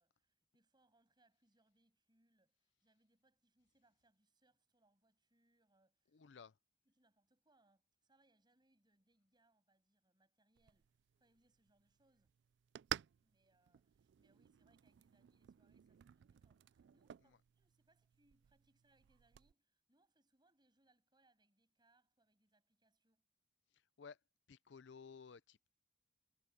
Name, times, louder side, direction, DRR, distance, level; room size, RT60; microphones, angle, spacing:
voice 1, 0.0-6.3 6.8-12.4 13.2-23.3, right 2 dB, 25° right, 7.9 m, -78 dB
voice 2, 6.1-6.5 24.0-24.2 24.5-25.7, left 5 dB, 75° left, 0.5 m, -56 dB
sound 1, 10.6-19.5, right 10 dB, 70° right, 0.3 m, -52 dB
head